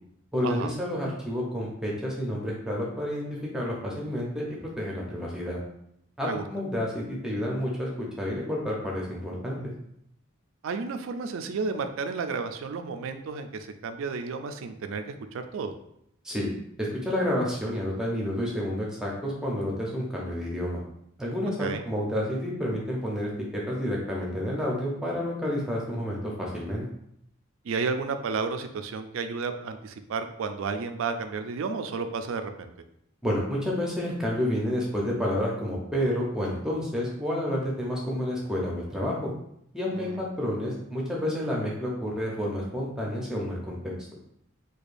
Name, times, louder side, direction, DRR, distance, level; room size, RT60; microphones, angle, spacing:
voice 1, 0.3-3.2 3.5-5.6 6.2-9.6 16.2-16.5 16.8-20.8 21.2-26.9 33.2-39.3 39.7-43.9, equal, 5° right, -3 dB, 0.6 m, -30 dB
voice 2, 10.6-15.7 21.6-21.8 27.6-32.7 39.9-40.2, right 4 dB, 70° right, 8 dB, 0.3 m, -32 dB
4.9 x 2.3 x 2.5 m, 0.75 s
head